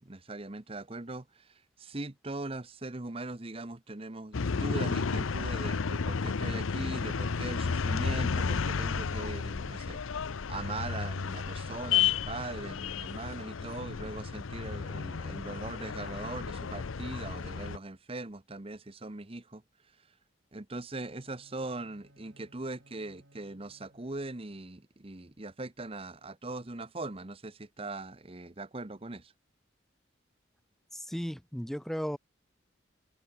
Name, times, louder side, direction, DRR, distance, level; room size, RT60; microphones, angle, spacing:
voice 1, 0.0-19.6 20.5-29.3, right 2 dB, 30° right, 1.0 m, -40 dB
sound 1, 4.3-17.8, left 5 dB, 90° left, 0.7 m, -32 dB
Bowed string instrument, 20.9-24.6, right 1 dB, 80° right, 4.6 m, -62 dB
voice 2, 30.9-32.2, equal, ahead, 0.5 m, -35 dB
head